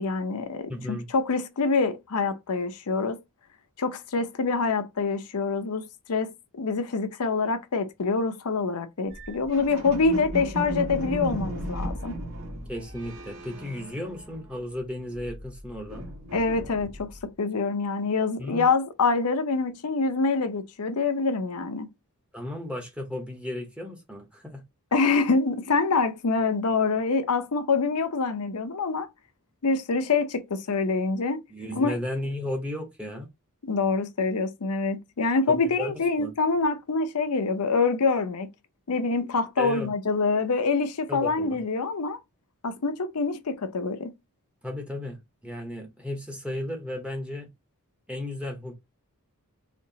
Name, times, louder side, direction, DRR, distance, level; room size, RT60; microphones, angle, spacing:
voice 1, 0.0-3.2 3.8-12.2 16.3-21.9 24.9-29.1 29.6-31.4 31.8-32.0 33.6-38.5 38.9-42.2 42.6-44.1, left 4 dB, 80° left, 0.7 m, -26 dB
voice 2, 0.7-1.1 12.7-16.1 18.4-18.7 22.3-24.6 31.5-33.3 35.5-36.3 39.6-39.9 41.1-41.6 44.6-47.5 48.1-48.7, left 1 dB, 5° right, 0.8 m, -34 dB
sound 1, 9.1-14.7 15.0-17.3, right 1 dB, 65° right, 1.6 m, -36 dB
4.3 x 2.9 x 2.7 m
head